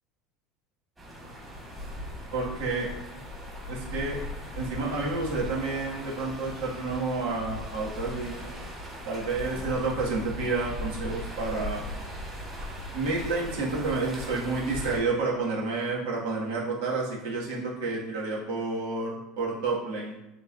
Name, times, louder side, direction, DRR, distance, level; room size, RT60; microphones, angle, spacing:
sound 1, 1.0-15.0, left 1 dB, 15° right, 1.8 m, -38 dB
voice 1, 2.3-2.9 3.7-4.2 4.6-8.5 9.0-11.8 12.9-20.2, right 3 dB, 85° right, -4 dB, 2.2 m, -30 dB
10.5 x 3.9 x 2.8 m, 0.95 s
cardioid pair, 165°, 0 cm